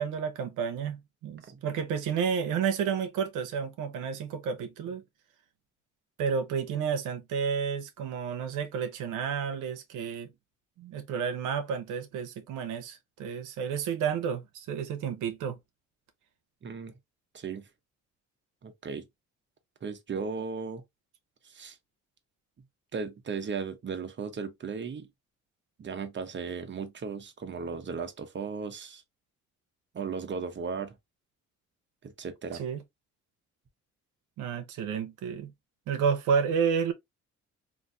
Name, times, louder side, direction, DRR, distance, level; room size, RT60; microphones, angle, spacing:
voice 1, 0.0-5.0 6.2-10.3 10.8-15.6 32.5-32.8 34.4-35.5 35.9-36.9, right 6 dB, 85° right, 0.7 m, -31 dB
voice 2, 16.6-17.0 17.3-17.7 18.6-19.1 19.8-20.8 21.4-21.8 22.9-25.1 25.8-29.0 29.9-30.9 32.0-32.6, right 5 dB, 40° right, 0.8 m, -36 dB
3.2 x 2.6 x 2.5 m
cardioid pair, 90°, 30 cm